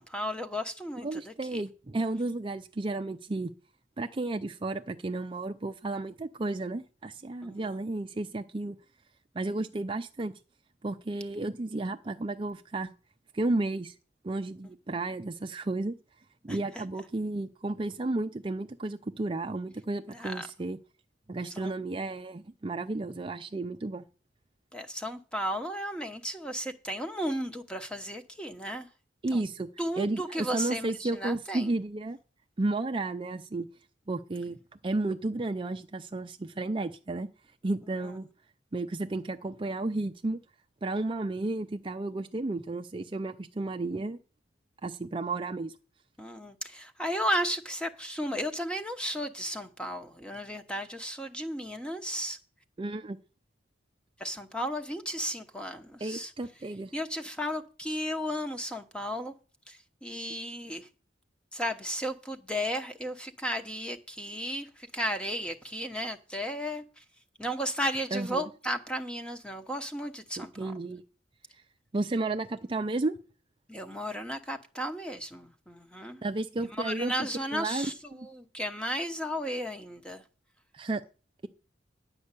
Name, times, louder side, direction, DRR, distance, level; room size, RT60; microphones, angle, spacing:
voice 1, 0.0-1.6 7.4-7.7 16.5-16.8 20.1-20.5 21.5-21.7 24.7-28.9 29.3-29.4 29.8-31.7 38.0-38.1 46.2-52.4 54.2-56.3 56.9-59.3 59.7-60.9 61.5-67.0 67.4-70.7 73.7-76.2 76.6-80.2, equal, 5° left, 1.0 m, -34 dB
voice 2, 1.0-3.5 4.0-8.8 9.3-10.3 10.8-12.9 13.3-13.9 14.2-16.0 16.4-20.8 21.3-24.0 29.2-29.7 30.0-32.2 32.6-33.7 34.1-34.6 34.8-37.3 37.6-38.3 38.7-40.4 40.8-44.2 44.8-45.7 52.8-53.2 56.0-56.9 68.1-68.4 70.4-71.0 71.9-73.2 76.2-77.1 77.5-78.3 80.7-81.0, right 2 dB, 30° right, 0.5 m, -32 dB
10.5 x 5.3 x 8.2 m
head